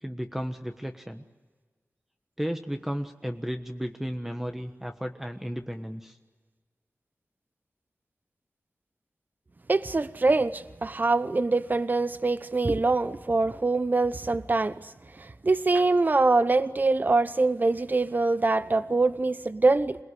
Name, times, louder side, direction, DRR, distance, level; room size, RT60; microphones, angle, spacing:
voice 1, 0.0-1.2 2.4-6.2, equal, 5° right, 5 dB, 1.3 m, -34 dB
voice 2, 9.7-14.9 15.2-20.0, right 3 dB, 35° right, 13 dB, 0.8 m, -24 dB
27.0 x 20.0 x 9.8 m, 1.4 s
wide cardioid pair, 85°, 5 cm